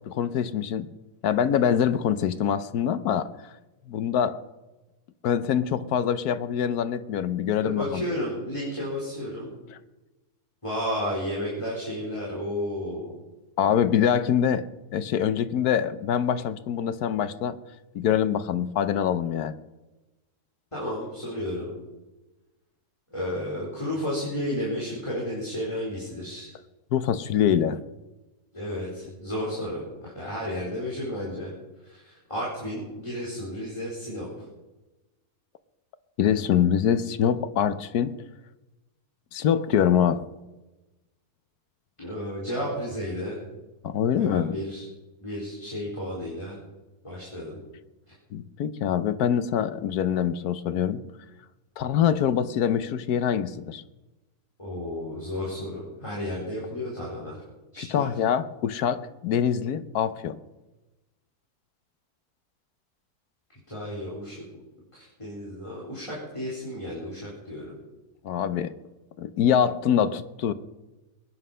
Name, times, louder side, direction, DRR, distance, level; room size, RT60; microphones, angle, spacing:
voice 1, 0.1-0.9 1.2-3.3 3.9-4.4 5.2-8.0 13.6-14.7 14.9-17.6 17.9-19.5 26.9-27.8 36.2-38.2 39.3-40.2 43.8-44.6 48.3-51.0 51.8-53.8 57.8-60.4 68.2-68.7 69.2-70.5, left 9 dB, 75° left, 13 dB, 1.3 m, -24 dB
voice 2, 7.6-9.5 10.6-13.1 20.7-21.7 23.1-26.5 28.5-29.8 30.2-31.5 31.9-34.3 42.0-43.4 44.1-44.8 45.2-46.5 47.0-47.6 54.6-57.4 57.7-58.1 63.7-64.4 64.9-67.7, left 1 dB, 20° left, -5 dB, 4.2 m, -32 dB
21.5 x 9.7 x 5.6 m, 1.1 s
omnidirectional pair, 1.7 m